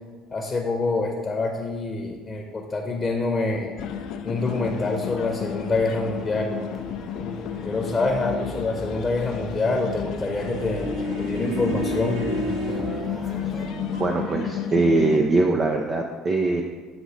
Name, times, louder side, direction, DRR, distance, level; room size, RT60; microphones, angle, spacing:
voice 1, 0.3-3.7 4.2-6.6 7.6-12.3, left 3 dB, 25° left, 2 dB, 0.9 m, -26 dB
sound 1, 3.8-15.2, left 9 dB, 65° left, 0.4 m, -32 dB
sound 2, 4.4-13.7, left 1 dB, 5° right, 1.0 m, -40 dB
sound 3, 10.3-14.2, right 1 dB, 70° right, 0.9 m, -31 dB
voice 2, 14.0-16.6, right 3 dB, 35° right, 2 dB, 0.5 m, -22 dB
7.8 x 2.6 x 5.1 m, 1.4 s
hypercardioid pair, 70°, 0 cm